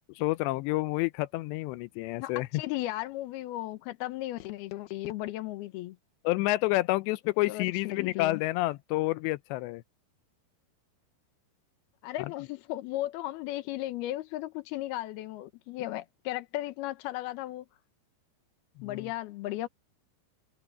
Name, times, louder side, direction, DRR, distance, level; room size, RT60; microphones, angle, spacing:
voice 1, 0.2-2.6 6.2-9.8 18.8-19.1, left 19 dB, 90° left, 2.9 m, -29 dB
voice 2, 2.2-6.0 7.5-8.4 12.0-17.7 18.8-19.7, left 16 dB, 70° left, 2.9 m, -35 dB
omnidirectional pair, 4.9 m